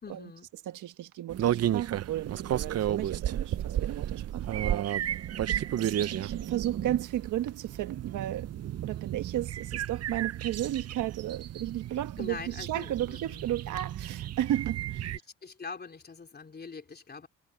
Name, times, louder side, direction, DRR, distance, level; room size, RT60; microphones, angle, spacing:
voice 1, 0.0-0.5 12.2-13.6 15.4-17.3, left 4 dB, 35° left, 3.7 m, -43 dB
voice 2, 0.7-4.9 5.5-8.5 8.8-15.1, right 13 dB, 80° right, 1.5 m, -34 dB
sound 1, 1.3-15.2, right 11 dB, 55° right, 0.8 m, -33 dB
cardioid pair, 90°, 30 cm